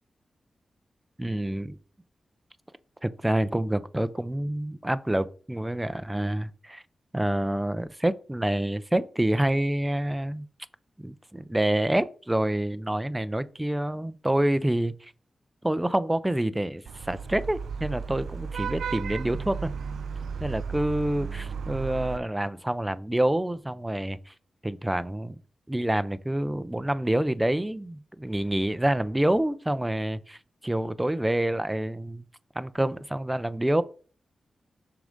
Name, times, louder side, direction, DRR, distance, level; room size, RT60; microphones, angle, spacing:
voice 1, 1.2-1.7 3.0-6.8 7.1-10.5 11.0-15.1 15.6-19.7 20.4-24.3 24.6-25.4 25.7-32.2 32.6-33.8, right 1 dB, 15° right, 0.5 m, -27 dB
Vehicle horn car horn honking / Traffic noise roadway noise, 16.9-22.2, right 6 dB, 85° right, 0.3 m, -34 dB
6.0 x 3.9 x 5.1 m
cardioid pair, 60°, 0 cm